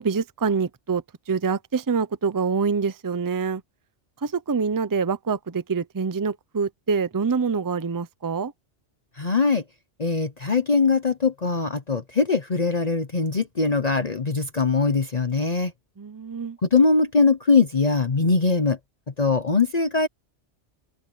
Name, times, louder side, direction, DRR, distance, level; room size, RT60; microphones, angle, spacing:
voice 1, 0.0-3.6 4.2-8.5 16.0-16.6, right 5 dB, 25° right, 0.5 m, -26 dB
voice 2, 9.2-9.6 10.0-15.7 16.6-18.8 19.2-20.1, left 4 dB, 35° left, 1.0 m, -21 dB
open air
omnidirectional pair, 1.2 m